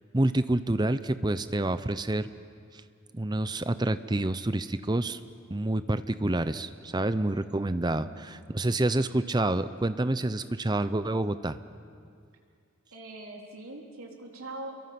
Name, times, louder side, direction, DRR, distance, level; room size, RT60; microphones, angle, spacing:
voice 1, 0.1-2.3 2.7-2.8 3.1-5.2 5.5-11.6, right 1 dB, 20° right, 12 dB, 0.6 m, -28 dB
voice 2, 7.8-8.3 12.9-14.7, right 2 dB, 85° right, 0 dB, 3.6 m, -43 dB
29.5 x 23.0 x 6.0 m, 2.4 s
head